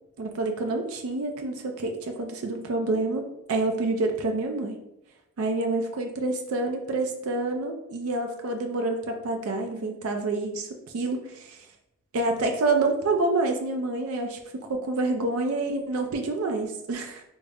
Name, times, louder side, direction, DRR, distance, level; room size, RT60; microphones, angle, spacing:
voice 1, 0.2-4.8 5.4-11.6 12.1-17.2, right 2 dB, 85° right, 4 dB, 0.4 m, -28 dB
3.6 x 2.0 x 3.4 m, 0.85 s
head